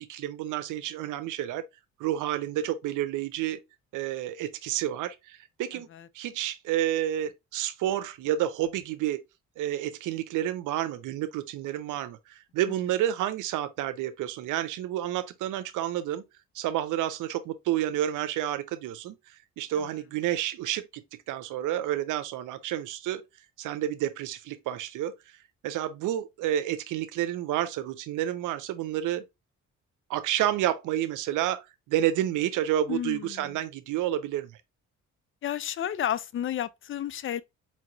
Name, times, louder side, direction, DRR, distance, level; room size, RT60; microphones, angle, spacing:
voice 1, 0.0-1.7 2.0-3.6 3.9-5.9 6.1-9.2 9.6-16.2 16.5-19.1 19.6-21.0 21.3-23.2 23.6-25.1 25.6-29.2 30.1-34.5, right 12 dB, 85° right, 0.6 m, -30 dB
voice 2, 32.9-33.6 35.4-37.4, left 10 dB, 45° left, 0.4 m, -32 dB
4.6 x 2.9 x 2.6 m
cardioid pair, 90°, 30 cm